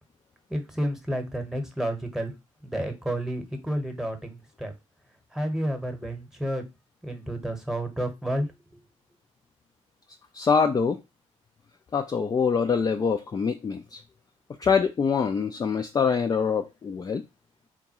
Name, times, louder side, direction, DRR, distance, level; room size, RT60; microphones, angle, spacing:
voice 1, 0.5-2.3 2.6-4.7 5.3-6.7 7.0-8.5, right 1 dB, ahead, 1.0 m, -30 dB
voice 2, 10.3-11.0 11.9-14.0 14.6-17.2, left 5 dB, 25° left, 0.4 m, -24 dB
3.8 x 2.2 x 2.9 m
figure-of-eight pair, 40°, 16 cm